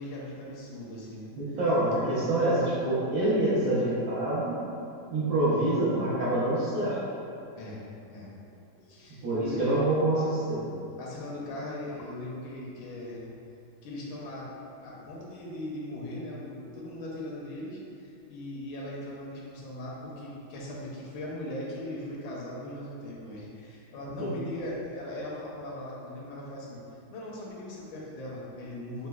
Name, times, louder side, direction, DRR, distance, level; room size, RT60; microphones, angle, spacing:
voice 1, 0.0-1.6 7.5-8.3 8.8-9.8 11.0-13.2 13.8-14.5 14.8-26.8 27.1-29.1, left 1 dB, 80° left, -5 dB, 1.3 m, -39 dB
voice 2, 1.4-4.6 5.1-7.0 9.2-10.7 24.2-24.3, right 1 dB, 80° right, -10 dB, 1.8 m, -26 dB
4.6 x 2.1 x 2.3 m, 2.5 s
omnidirectional pair, 2.1 m